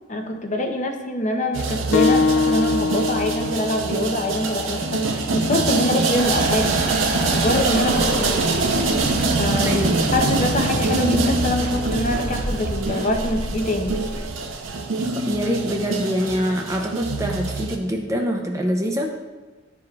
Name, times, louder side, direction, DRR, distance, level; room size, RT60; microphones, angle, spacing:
voice 1, 0.1-6.8 7.3-8.4 9.4-9.8 10.1-14.0, left 1 dB, 40° left, 3 dB, 0.7 m, -24 dB
sound 1, 1.5-17.8, right 3 dB, 85° right, 0.7 m, -24 dB
sound 2, 1.9-7.1, left 4 dB, 65° left, 0.4 m, -25 dB
sound 3, 6.2-14.6, right 1 dB, 45° right, 1.1 m, -27 dB
voice 2, 9.6-10.0 15.1-19.1, equal, 15° right, 1 dB, 0.6 m, -24 dB
11.5 x 4.9 x 2.4 m, 1.3 s
head